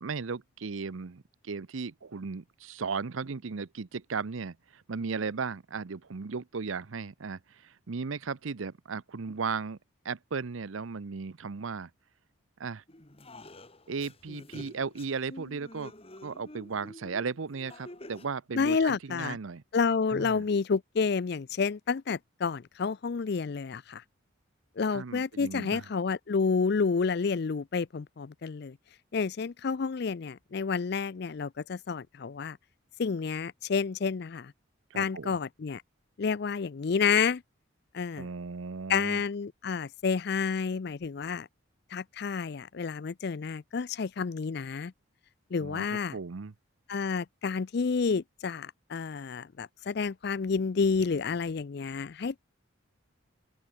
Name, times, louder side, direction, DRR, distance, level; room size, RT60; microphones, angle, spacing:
voice 1, 0.0-9.8 10.0-11.9 12.6-12.8 13.9-15.9 16.2-19.6 20.1-20.4 24.9-25.9 34.9-35.4 38.1-39.2 45.6-46.5, right 5 dB, 80° right, 0.7 m, -36 dB
sound 1, 12.9-18.2, left 1 dB, 30° left, 2.0 m, -48 dB
voice 2, 18.5-19.4 19.7-24.0 24.8-28.8 29.1-32.6 33.0-34.5 35.0-35.8 36.2-37.4 37.9-38.3 38.9-41.5 41.9-44.9 45.5-46.2 46.9-52.4, left 5 dB, 55° left, 0.4 m, -30 dB
open air
head